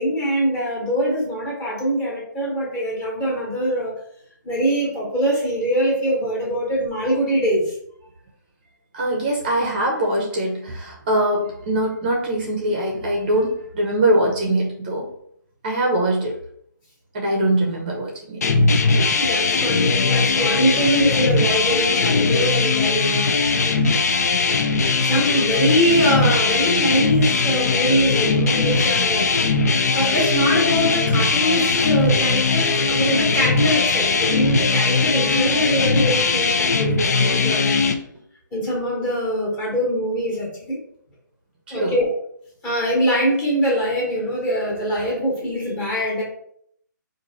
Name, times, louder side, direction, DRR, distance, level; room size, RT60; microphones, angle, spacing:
voice 1, 0.0-3.9 4.4-7.7 19.1-23.3 24.8-29.3 29.9-37.6 38.5-40.8 41.7-42.0 42.6-46.2, equal, 15° left, -4 dB, 1.1 m, -23 dB
voice 2, 8.9-15.1 15.6-16.4 17.1-18.4 41.7-41.9, right 1 dB, 25° right, -1 dB, 0.7 m, -22 dB
sound 1, 18.4-37.9, left 4 dB, 50° left, 0.5 m, -19 dB
4.4 x 2.6 x 4.0 m, 0.67 s
hypercardioid pair, 165°, 11 cm